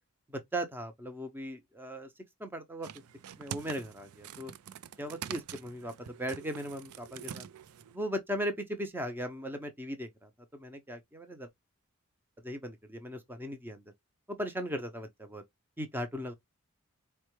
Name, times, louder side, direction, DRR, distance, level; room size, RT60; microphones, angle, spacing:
voice 1, 0.3-2.1 2.4-2.9 3.4-4.5 5.0-5.9 6.2-7.5 7.9-11.5 12.4-13.8 14.3-15.4 15.8-16.3, equal, 10° right, 0.6 m, -38 dB
sound 1, 2.8-8.0, right 9 dB, 80° right, 0.4 m, -45 dB
4.3 x 2.2 x 3.0 m
head